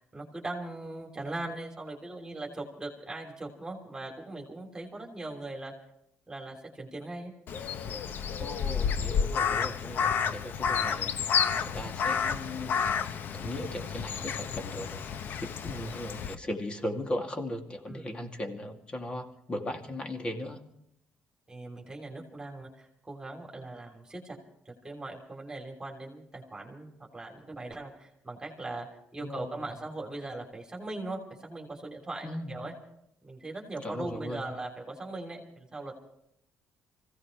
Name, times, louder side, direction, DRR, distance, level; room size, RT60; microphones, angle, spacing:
voice 1, 0.0-5.7 6.3-7.3 15.7-16.0 17.9-18.2 21.5-24.4 24.6-28.9 29.1-32.7 33.2-36.0, right 2 dB, 15° right, 0 dB, 3.3 m, -40 dB
Crow, 7.5-16.3, left 7 dB, 60° left, 0.9 m, -30 dB
voice 2, 8.4-11.2 11.6-13.0 13.3-15.0 15.3-20.6 29.2-29.5 32.2-32.5 33.8-34.5, left 1 dB, 25° left, 3 dB, 2.6 m, -37 dB
25.5 x 16.5 x 3.3 m, 0.74 s
cardioid pair, 105°, 4 cm